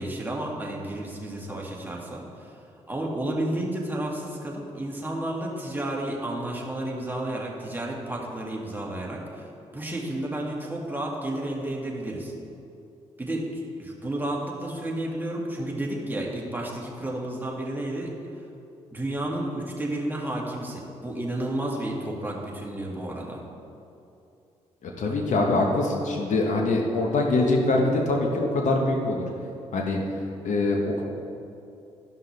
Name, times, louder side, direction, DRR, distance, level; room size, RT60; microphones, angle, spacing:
voice 1, 0.0-2.5 2.9-12.3 13.2-18.1 18.9-23.4 25.1-25.2, right 1 dB, 15° right, -2 dB, 2.0 m, -31 dB
voice 2, 24.8-29.2 29.7-30.0 30.4-31.0, left 2 dB, 60° left, 1 dB, 1.1 m, -24 dB
12.5 x 5.6 x 3.4 m, 2.7 s
hypercardioid pair, 45°, 14 cm